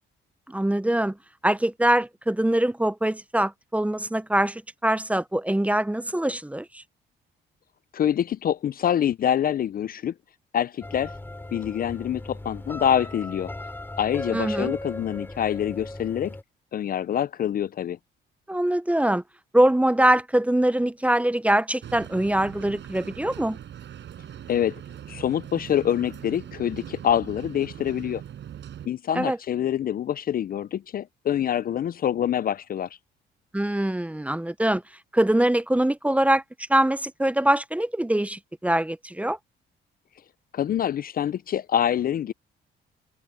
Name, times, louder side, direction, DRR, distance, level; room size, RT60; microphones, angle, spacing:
voice 1, 0.5-1.2 1.4-6.8 14.3-14.7 18.5-19.2 19.5-23.6 29.1-29.4 33.5-34.8 35.1-36.4 36.7-39.4, right 1 dB, 5° right, 0.7 m, -23 dB
voice 2, 7.9-10.1 10.5-11.1 11.5-13.5 14.0-16.4 16.7-18.0 24.5-24.7 25.1-28.2 28.9-32.9 40.5-42.3, left 10 dB, 45° left, 0.4 m, -25 dB
sound 1, 10.8-16.4, left 1 dB, 10° left, 3.7 m, -37 dB
sound 2, 21.8-28.9, right 10 dB, 65° right, 5.3 m, -41 dB
cardioid pair, 90°, 20 cm